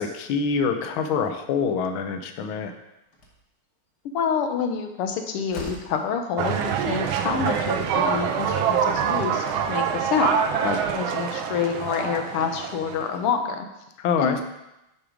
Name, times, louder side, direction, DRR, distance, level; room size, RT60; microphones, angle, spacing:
voice 1, 0.0-2.7 14.0-14.4, left 5 dB, 75° left, 6 dB, 1.5 m, -25 dB
Slam, 3.1-3.5 5.0-5.1 5.5-6.0, equal, 55° left, 1.8 m, -39 dB
voice 2, 4.1-13.7 14.2-14.4, left 6 dB, 90° left, 5 dB, 1.8 m, -27 dB
sound 1, 6.4-13.2, right 7 dB, 75° right, 1.4 m, -25 dB
8.7 x 4.7 x 5.0 m, 0.91 s
omnidirectional pair, 2.4 m